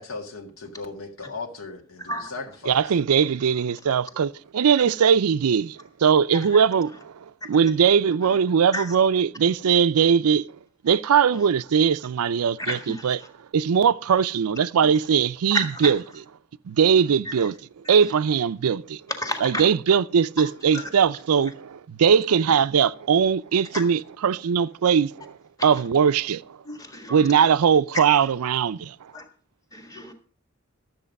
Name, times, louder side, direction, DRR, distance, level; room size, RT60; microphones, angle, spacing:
voice 1, 0.0-3.0, left 3 dB, 70° left, 1.8 m, -37 dB
voice 2, 2.7-7.1 7.5-10.4 10.8-13.2 13.5-16.0 16.7-17.6 17.9-19.0 19.4-25.3 25.6-26.4 27.1-28.9, right 7 dB, 90° right, 0.4 m, -20 dB
voice 3, 12.6-13.1 15.5-15.9 17.9-18.0 19.2-19.6 20.7-20.9 23.7-23.8 26.7-27.2 29.1-29.2 29.7-30.1, left 1 dB, 15° left, 1.6 m, -31 dB
12.5 x 7.8 x 5.3 m
head